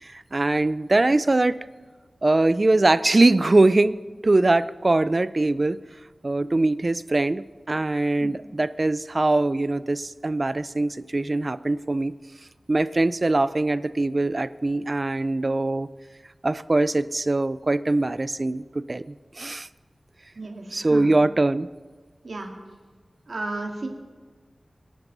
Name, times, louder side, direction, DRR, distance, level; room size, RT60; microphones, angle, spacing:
voice 1, 0.0-1.6 2.2-4.0 4.2-5.8 6.2-12.1 12.7-15.9 16.4-19.7 20.7-21.7, right 2 dB, 40° right, 16 dB, 0.4 m, -22 dB
voice 2, 20.4-21.1 22.2-22.5 23.3-23.9, right 2 dB, 70° right, 2 dB, 2.1 m, -33 dB
23.5 x 10.5 x 4.0 m, 1.4 s
wide cardioid pair, 85°, 0 cm